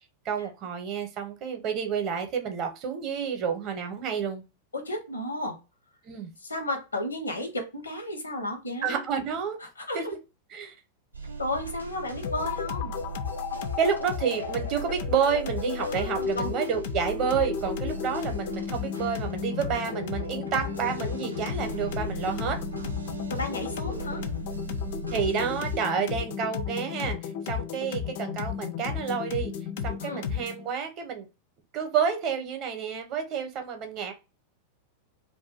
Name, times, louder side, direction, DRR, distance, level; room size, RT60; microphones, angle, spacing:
voice 1, 0.2-4.4 6.0-6.3 8.8-9.6 9.9-10.0 10.5-10.7 13.8-22.6 25.1-27.2 27.5-29.5 29.8-31.3 31.7-34.1, right 7 dB, 40° right, 6 dB, 0.7 m, -29 dB
voice 2, 4.7-5.6 6.4-9.0 9.9-10.1 11.4-13.0 15.8-16.6 23.3-24.3 30.0-30.3, left 1 dB, 80° left, 5 dB, 0.8 m, -33 dB
sound 1, 11.1-25.8, right 4 dB, 85° right, 0.5 m, -39 dB
sound 2, 12.2-30.7, left 7 dB, 50° left, 0.4 m, -33 dB
2.5 x 2.2 x 4.0 m, 0.28 s
figure-of-eight pair, 90°, 0 cm